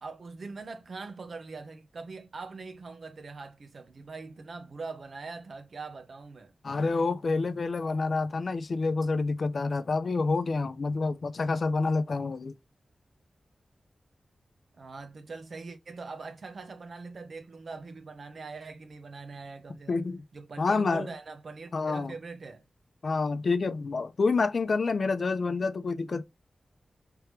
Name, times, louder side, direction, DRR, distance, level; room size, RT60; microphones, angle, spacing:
voice 1, 0.0-6.5 14.8-20.0 20.3-22.6, right 4 dB, 70° right, 0.8 m, -42 dB
voice 2, 6.6-12.5 19.9-20.2 20.6-21.1 21.7-22.1 23.0-26.2, left 4 dB, 60° left, 0.5 m, -28 dB
3.4 x 3.3 x 3.1 m
wide cardioid pair, 70°, 0 cm